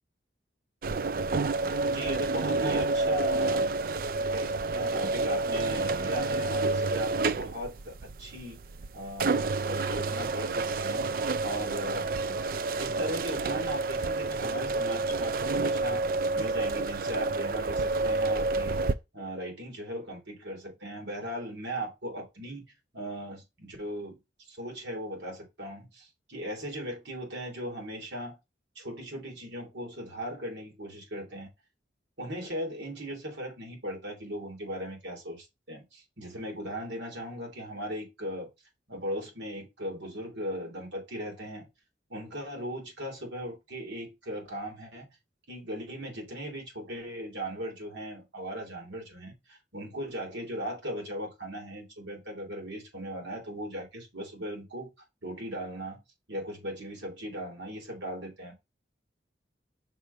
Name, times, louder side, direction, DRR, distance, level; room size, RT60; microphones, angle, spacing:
sound 1, 0.8-18.9, right 3 dB, 50° right, 0.4 m, -29 dB
voice 1, 1.9-8.6 8.9-12.4 12.8-16.1 16.3-28.4 28.7-31.5 32.2-38.5 38.9-41.7 42.1-45.1 45.5-54.9 55.2-56.0 56.3-58.5, equal, 85° right, 3.1 m, -38 dB
6.0 x 3.2 x 5.4 m
head